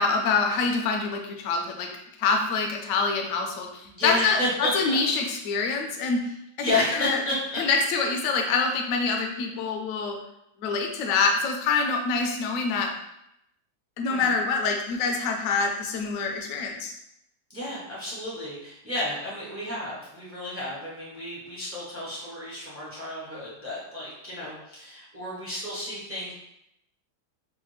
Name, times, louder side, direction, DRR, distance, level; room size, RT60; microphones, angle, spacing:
voice 1, 0.0-1.9 2.2-6.2 7.0-7.2 7.6-10.2 10.6-12.9 14.0-16.9, left 4 dB, 75° left, 2 dB, 0.7 m, -25 dB
voice 2, 3.9-5.0 6.6-7.6 14.1-14.3 17.5-26.3, left 1 dB, 20° right, -7 dB, 0.4 m, -31 dB
3.3 x 2.3 x 3.2 m, 0.80 s
omnidirectional pair, 1.9 m